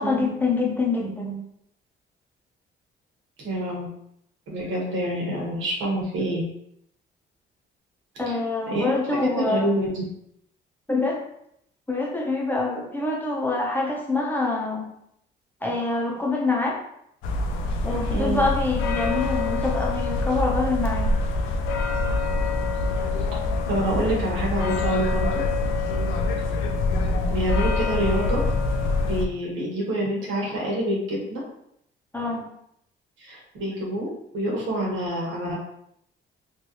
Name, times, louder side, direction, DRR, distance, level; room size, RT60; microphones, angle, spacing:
voice 1, 0.0-1.4 8.2-9.7 10.9-11.2 11.9-14.9 15.6-16.8 17.8-21.1 32.1-32.4, left 3 dB, 10° left, -2 dB, 0.8 m, -25 dB
voice 2, 3.4-3.9 4.5-6.4 8.7-10.0 18.1-18.4 23.7-25.3 27.3-28.4 29.0-31.4 33.2-35.6, right 1 dB, 75° right, -3 dB, 1.2 m, -27 dB
sound 1, 17.2-29.3, left 3 dB, 90° left, 0.4 m, -25 dB
3.2 x 2.6 x 2.9 m, 0.74 s
cardioid pair, 90°, 20 cm